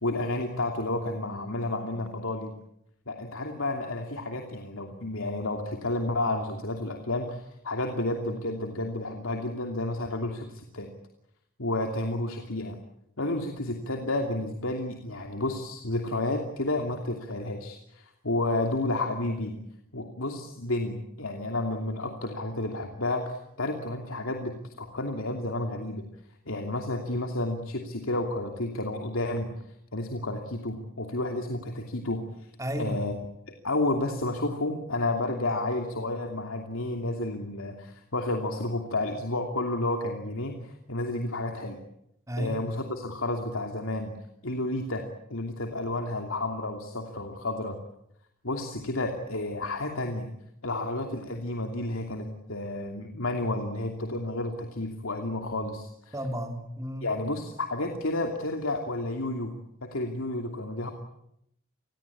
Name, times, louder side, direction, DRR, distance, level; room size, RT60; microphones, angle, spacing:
voice 1, 0.0-2.5 3.1-10.9 11.6-12.8 13.2-19.5 19.9-26.0 26.5-29.5 29.9-32.5 32.7-33.2 33.6-41.8 42.4-44.2 44.4-45.0 45.3-47.8 48.4-50.3 50.6-56.1 57.0-59.5 59.9-60.9, left 2 dB, 85° left, 4 dB, 2.9 m, -31 dB
voice 2, 32.6-33.0 42.3-42.6 56.1-57.1, equal, 15° right, 5 dB, 3.2 m, -32 dB
29.0 x 21.5 x 8.6 m, 0.77 s
head